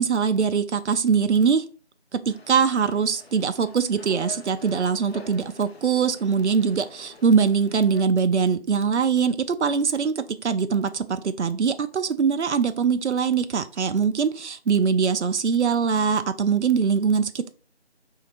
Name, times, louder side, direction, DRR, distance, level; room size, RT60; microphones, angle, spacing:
voice 1, 0.0-1.6 2.1-17.5, right 6 dB, 85° right, 10 dB, 0.5 m, -22 dB
sound 1, 2.3-8.0, left 3 dB, 65° left, 0.9 m, -46 dB
4.3 x 2.8 x 4.1 m, 0.37 s
figure-of-eight pair, 175°, 34 cm